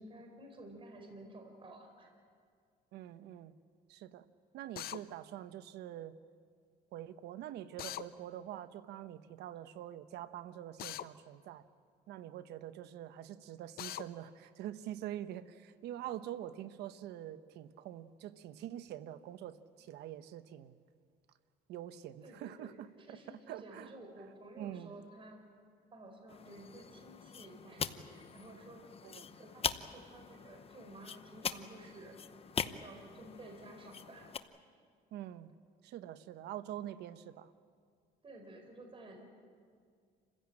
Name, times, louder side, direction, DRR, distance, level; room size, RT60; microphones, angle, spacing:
voice 1, 0.0-2.1 22.2-25.4 25.9-28.9 29.3-32.2 32.5-34.3 38.2-39.2, right 1 dB, 30° right, 3 dB, 4.7 m, -53 dB
voice 2, 2.9-3.5 3.9-4.2 4.5-6.2 6.9-11.7 12.1-20.7 21.7-23.9 24.6-24.9 29.0-29.4 35.1-35.5 35.8-37.5, right 12 dB, 80° right, 12 dB, 1.1 m, -45 dB
Drill, 4.8-5.0 7.8-8.1 10.8-11.1 13.8-14.0, left 13 dB, 65° left, 0.7 m, -41 dB
sound 1, 26.3-34.4, left 7 dB, 35° left, 0.9 m, -42 dB
28.5 x 16.0 x 8.8 m, 2.2 s
cardioid pair, 110°, 17 cm